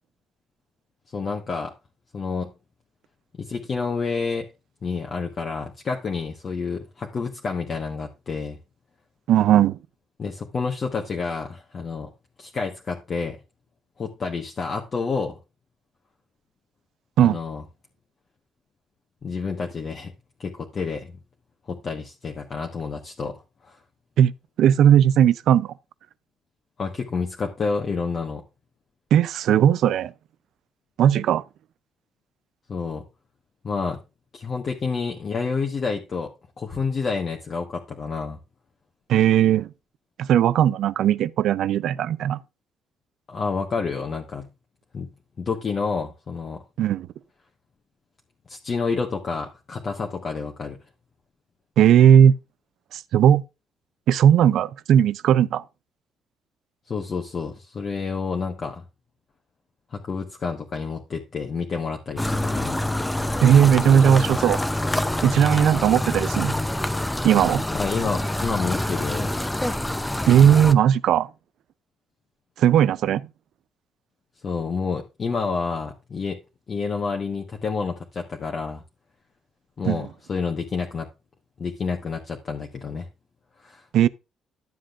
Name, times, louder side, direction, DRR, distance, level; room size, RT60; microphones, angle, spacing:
voice 1, 1.1-1.7 2.1-2.5 3.4-4.5 4.8-8.6 10.2-12.1 12.4-13.4 14.0-15.4 17.2-17.6 19.2-20.1 20.4-21.1 21.7-23.4 23.6-23.8 26.8-28.4 32.7-33.0 33.6-34.0 34.3-36.3 36.6-38.4 43.3-44.5 44.9-45.1 45.4-46.6 48.5-50.8 56.9-58.8 59.9-62.8 63.3-63.4 67.7-69.3 74.4-76.4 76.7-78.8 79.8-81.1 81.6-83.1 83.6-83.9, left 4 dB, 35° left, 1.2 m, -29 dB
voice 2, 9.3-9.8 17.2-17.4 24.2-24.3 24.6-25.7 29.1-30.1 31.0-31.4 39.1-39.7 40.2-42.4 46.8-47.1 51.8-52.3 52.9-53.4 54.1-55.6 63.4-64.6 65.2-66.6 67.2-67.6 70.3-71.3 72.6-73.3 79.8-80.1 83.9-84.1, right 9 dB, 70° right, 0.5 m, -17 dB
sound 1, 62.2-70.7, left 1 dB, 5° left, 0.6 m, -26 dB
11.5 x 7.5 x 2.5 m
cardioid pair, 125°, 0 cm